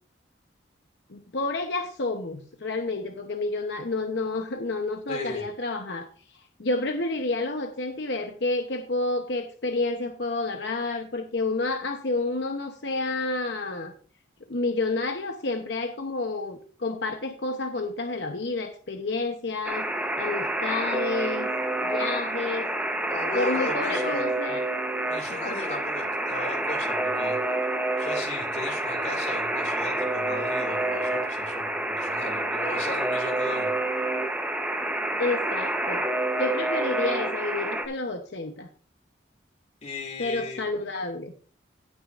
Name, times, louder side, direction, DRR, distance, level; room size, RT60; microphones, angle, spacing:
voice 1, 1.1-6.1 6.3-13.9 14.5-19.9 20.2-21.5 21.8-22.7 23.3-24.6 25.5-25.6 35.2-36.0 36.4-38.7 40.2-41.3, left 3 dB, 70° left, 5 dB, 0.8 m, -29 dB
voice 2, 5.1-5.5 23.1-24.3 25.0-27.6 28.0-33.7 39.8-40.7, left 2 dB, 35° left, 3 dB, 2.3 m, -36 dB
Alarm, 19.6-37.9, right 1 dB, 5° right, 0.8 m, -28 dB
17.5 x 6.2 x 2.5 m, 0.41 s
head